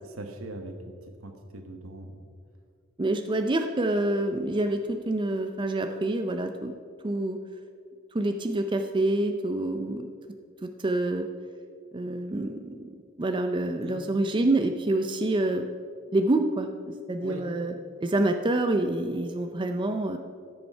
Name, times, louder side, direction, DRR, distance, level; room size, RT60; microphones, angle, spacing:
voice 1, 0.0-0.8 1.0-2.3 13.8-14.0 17.2-17.4, right 2 dB, 75° right, 6 dB, 1.2 m, -41 dB
voice 2, 3.0-6.7 7.0-7.4 8.1-10.1 10.6-11.3 11.9-12.9 13.2-15.7 16.1-16.7 17.1-17.7 18.0-20.2, right 2 dB, 25° right, 6 dB, 0.4 m, -27 dB
12.5 x 7.0 x 5.5 m, 2.2 s
head